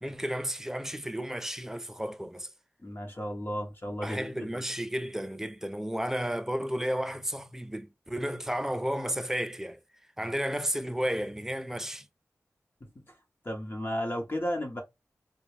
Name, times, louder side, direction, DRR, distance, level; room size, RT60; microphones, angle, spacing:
voice 1, 0.0-2.5 4.0-9.8 10.2-12.1, equal, 5° right, 0.4 m, -33 dB
voice 2, 2.8-4.5 12.8-13.1 13.4-14.8, equal, 40° left, 1.0 m, -34 dB
3.4 x 2.3 x 3.3 m
cardioid pair, 45°, 6 cm